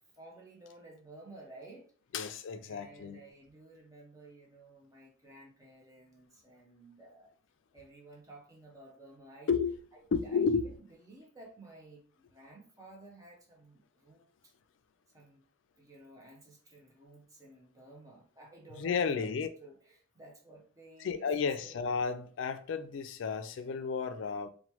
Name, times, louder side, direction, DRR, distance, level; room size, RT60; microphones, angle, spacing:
voice 1, 0.1-1.9 2.7-7.3 7.7-9.5 9.9-10.7 11.1-14.5 15.1-15.5 15.8-19.3 19.6-21.3 21.6-21.8, right 2 dB, 15° right, 0.6 m, -54 dB
voice 2, 2.1-3.2 9.5-9.7 10.1-10.7 18.8-19.5 21.0-24.5, left 5 dB, 75° left, 0.3 m, -32 dB
3.0 x 2.2 x 3.0 m
head